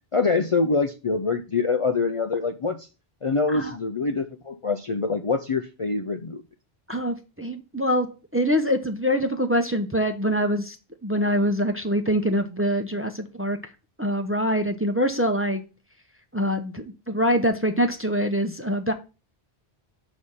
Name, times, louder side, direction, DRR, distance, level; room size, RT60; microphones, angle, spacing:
voice 1, 0.1-2.9 3.2-6.4, left 4 dB, 40° left, 6 dB, 0.5 m, -25 dB
voice 2, 6.9-10.8 11.0-13.6 14.0-15.6 16.3-18.9, equal, 15° right, 6 dB, 0.6 m, -24 dB
6.2 x 5.0 x 5.5 m, 0.31 s
omnidirectional pair, 1.0 m